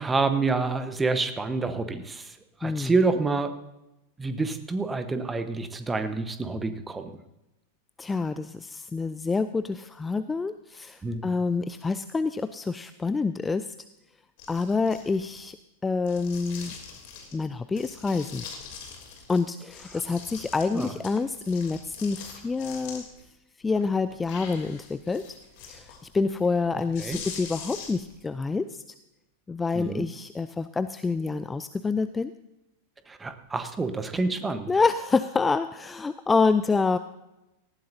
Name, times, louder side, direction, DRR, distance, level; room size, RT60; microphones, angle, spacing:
voice 1, 0.0-3.5 4.2-7.1 11.0-11.3 19.9-20.0 20.7-20.9 27.0-27.2 29.7-30.1 33.1-34.7, right 3 dB, 15° right, 10 dB, 1.1 m, -28 dB
voice 2, 8.0-13.7 14.5-15.6 15.8-16.7 17.3-18.5 19.3-23.0 23.6-25.2 25.7-28.8 29.5-32.3 34.7-37.0, left 4 dB, 15° left, 12 dB, 0.4 m, -27 dB
sound 1, 14.4-15.4 16.0-17.4 17.8-19.4 19.7-23.2 23.6-28.2, left 6 dB, 50° left, 3.0 m, -43 dB
19.0 x 14.5 x 2.7 m, 0.93 s
figure-of-eight pair, 90°, 0 cm